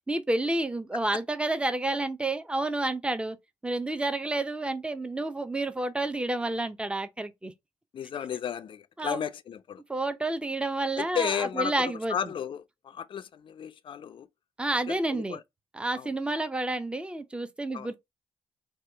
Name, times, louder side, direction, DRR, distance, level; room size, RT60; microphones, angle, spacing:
voice 1, 0.1-3.4 3.6-7.5 9.0-9.2 9.9-12.2 14.6-15.4 15.7-18.0, right 2 dB, 10° right, 0.6 m, -30 dB
voice 2, 7.9-9.8 11.0-14.3 14.9-15.4 15.9-16.1 17.7-17.9, left 8 dB, 55° left, 0.4 m, -34 dB
2.8 x 2.3 x 3.3 m
supercardioid pair, 55°, 11 cm